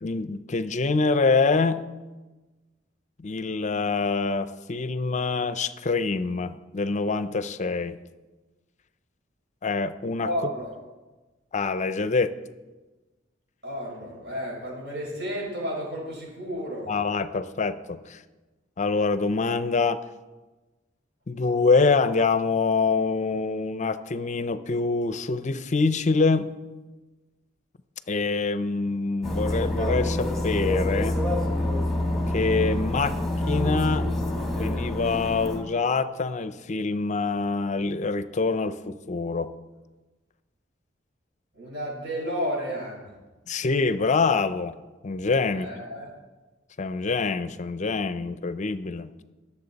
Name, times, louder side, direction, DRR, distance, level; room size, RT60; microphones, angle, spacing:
voice 1, 0.0-1.9 3.2-8.0 9.6-10.3 11.5-12.3 16.9-18.2 18.8-20.0 21.3-26.5 28.1-31.2 32.3-33.2 33.5-34.1 34.6-39.5 43.5-44.8 45.0-45.7 46.8-49.1, left 4 dB, 40° left, 13 dB, 0.5 m, -25 dB
voice 2, 10.2-10.7 13.6-16.9 41.5-43.1 45.5-46.1, equal, 65° right, -3 dB, 4.8 m, -32 dB
sound 1, 29.2-35.6, left 1 dB, ahead, 1.7 m, -26 dB
21.0 x 7.2 x 4.1 m, 1.2 s
head